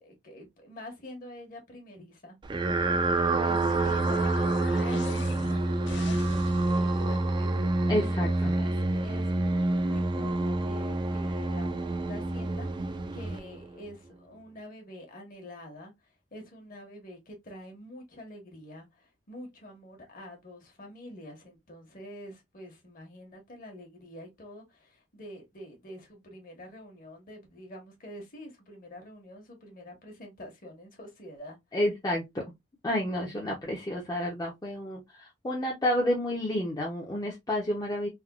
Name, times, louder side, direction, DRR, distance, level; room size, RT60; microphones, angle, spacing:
voice 1, 0.0-2.4 3.3-7.5 8.0-31.6, left 1 dB, 45° left, 1.2 m, -46 dB
sound 1, 2.4-13.9, right 2 dB, 25° right, 0.3 m, -28 dB
sound 2, 2.6-7.2, left 3 dB, 65° left, 0.6 m, -42 dB
voice 2, 7.9-8.5 31.7-32.4 32.8-38.1, left 1 dB, 20° left, 0.6 m, -30 dB
3.5 x 2.2 x 2.2 m
head